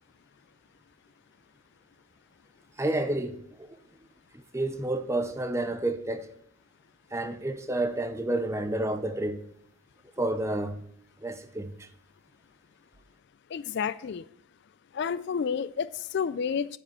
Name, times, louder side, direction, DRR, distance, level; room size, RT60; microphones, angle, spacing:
voice 1, 2.8-3.8 4.3-6.3 7.1-9.4 10.2-10.8 11.2-11.9, right 1 dB, 15° right, 0.5 m, -30 dB
voice 2, 13.5-14.2 14.9-16.8, left 6 dB, 50° left, 0.3 m, -30 dB
9.7 x 5.0 x 7.6 m
head